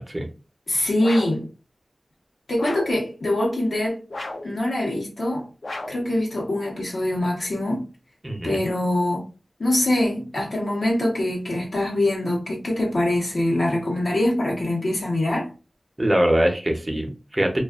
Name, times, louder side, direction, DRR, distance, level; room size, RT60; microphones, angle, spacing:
voice 1, 0.7-1.5 2.5-4.0 4.4-5.5 5.9-7.8 8.4-9.3 9.6-15.5, left 1 dB, 85° left, 0.9 m, -23 dB
sound 1, 1.0-1.5 2.6-3.0 4.1-4.6 5.6-6.1, left 2 dB, 65° left, 0.5 m, -34 dB
voice 2, 8.2-8.6 16.0-17.6, right 1 dB, 25° right, 0.7 m, -22 dB
2.4 x 2.4 x 2.3 m
wide cardioid pair, 65°, 0 cm